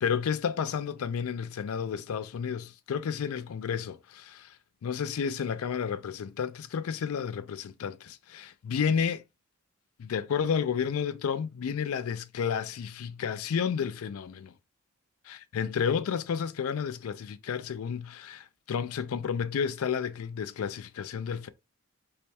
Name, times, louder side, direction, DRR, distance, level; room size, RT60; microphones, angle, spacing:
voice 1, 0.0-4.6 4.8-9.2 10.0-14.5 15.3-21.5, left 7 dB, 85° left, 0.4 m, -31 dB
3.2 x 2.2 x 4.1 m
head